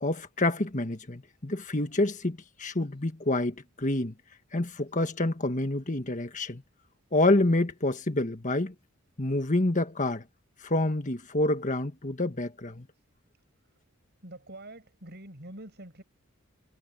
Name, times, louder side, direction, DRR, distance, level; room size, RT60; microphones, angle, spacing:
voice 1, 0.0-4.1 4.5-6.6 7.1-8.7 9.2-10.2 10.6-12.9, left 2 dB, 35° left, 1.6 m, -27 dB
voice 2, 14.2-16.0, right 1 dB, 50° right, 7.1 m, -46 dB
head